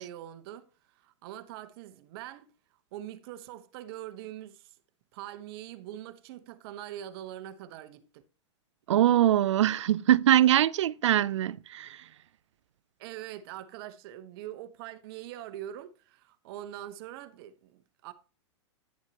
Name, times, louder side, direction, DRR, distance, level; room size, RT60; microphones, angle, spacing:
voice 1, 0.0-2.5 2.9-4.8 5.1-8.2 13.0-18.1, right 12 dB, 55° right, 0.9 m, -43 dB
voice 2, 8.9-12.0, right 12 dB, 75° right, 0.5 m, -23 dB
10.5 x 7.2 x 2.9 m
hypercardioid pair, 115°, 15 cm